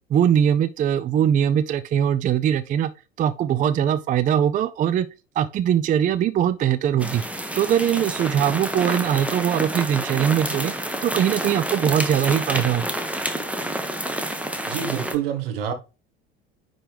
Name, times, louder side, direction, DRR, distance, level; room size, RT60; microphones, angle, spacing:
voice 1, 0.1-2.9 3.2-5.1 5.4-7.2 7.5-10.7 11.0-12.9, right 9 dB, 25° right, 0.4 m, -21 dB
sound 1, 7.0-15.2, right 1 dB, 5° right, 1.1 m, -29 dB
voice 2, 14.7-15.7, right 9 dB, 65° right, 1.4 m, -27 dB
9.9 x 3.9 x 3.3 m
figure-of-eight pair, 65°, 30 cm